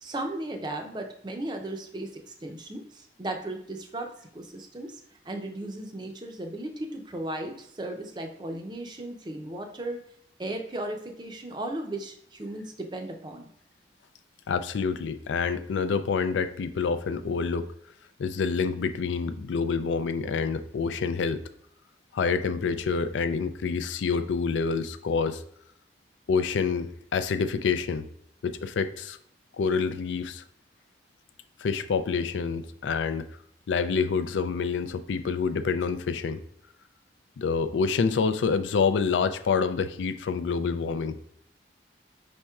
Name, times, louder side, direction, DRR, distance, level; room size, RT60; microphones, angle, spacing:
voice 1, 0.0-5.0 5.3-10.1 10.4-13.5, right 1 dB, 25° right, 4 dB, 0.5 m, -36 dB
voice 2, 14.5-17.7 18.2-21.4 22.1-25.4 26.3-28.1 28.4-29.2 29.6-30.4 31.6-33.3 33.7-36.4 37.4-41.3, left 5 dB, 90° left, 11 dB, 0.4 m, -27 dB
5.2 x 4.3 x 2.3 m, 0.70 s
head